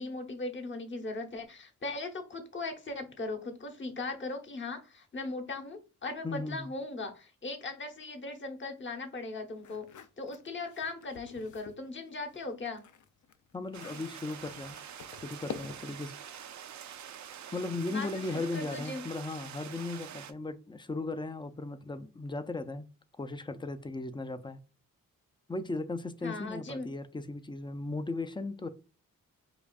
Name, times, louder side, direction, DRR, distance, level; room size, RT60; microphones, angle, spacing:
voice 1, 0.0-9.9 10.2-12.8 17.9-19.0 26.2-26.9, left 3 dB, 35° left, 0.9 m, -38 dB
voice 2, 6.2-6.7 13.5-14.8 15.2-16.1 17.5-22.9 23.2-24.6 25.5-28.7, left 2 dB, 15° left, 0.4 m, -37 dB
sound 1, 9.6-11.8 12.2-16.0, left 6 dB, 65° left, 0.5 m, -48 dB
sound 2, 13.7-20.3, right 9 dB, 60° right, 0.5 m, -46 dB
4.9 x 2.5 x 2.3 m
cardioid pair, 70°, 32 cm